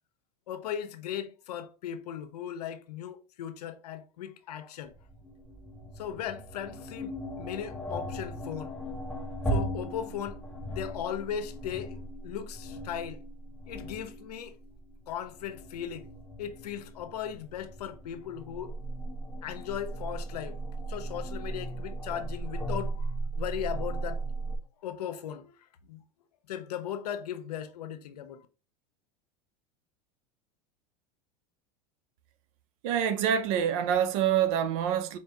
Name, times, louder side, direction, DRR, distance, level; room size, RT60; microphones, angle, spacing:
voice 1, 0.5-4.9 6.0-8.8 9.5-12.0 12.2-13.2 13.7-14.6 15.1-16.1 16.4-18.7 19.4-20.6 20.9-24.2 24.8-26.0 26.5-28.5, left 9 dB, 90° left, 0.7 m, -37 dB
sound 1, 4.8-24.6, right 1 dB, 5° left, 0.7 m, -37 dB
voice 2, 32.8-35.2, right 9 dB, 60° right, 0.7 m, -26 dB
4.3 x 2.8 x 3.5 m
supercardioid pair, 120°, 20 cm